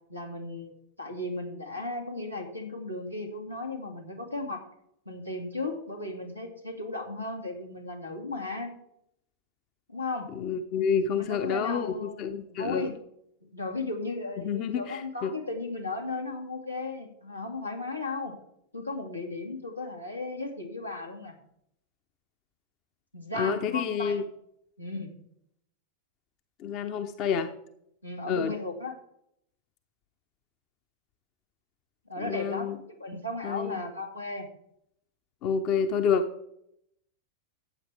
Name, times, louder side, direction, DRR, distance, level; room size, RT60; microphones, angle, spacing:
voice 1, 0.1-4.6 5.1-8.7 9.9-10.3 11.1-12.9 13.5-18.3 18.7-21.4 23.1-24.3 24.8-25.1 28.0-29.0 32.1-34.5, left 2 dB, 90° left, 0 dB, 2.3 m, -35 dB
voice 2, 10.4-12.9 14.4-15.3 23.3-24.2 26.6-27.5 28.3-28.5 32.2-32.8 33.4-33.8 35.4-36.2, left 6 dB, 40° left, 9 dB, 0.8 m, -28 dB
14.5 x 8.6 x 3.4 m, 0.73 s
figure-of-eight pair, 90°, 0 cm